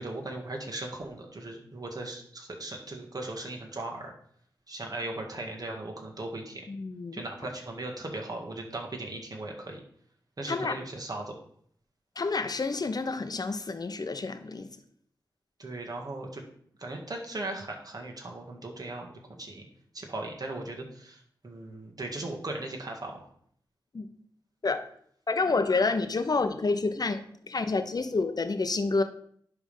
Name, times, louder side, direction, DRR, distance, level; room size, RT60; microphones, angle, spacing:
voice 1, 0.0-4.1 4.7-6.6 7.1-9.8 10.4-11.4 15.6-16.4 16.8-19.7 19.9-23.3, right 2 dB, 50° right, 1.9 m, -38 dB
voice 2, 6.7-7.2 10.5-10.8 12.2-14.7 23.9-24.1 24.6-24.8 25.3-27.2 27.5-29.0, left 3 dB, 50° left, 0.9 m, -28 dB
10.5 x 3.5 x 5.4 m
cardioid pair, 55°, 8 cm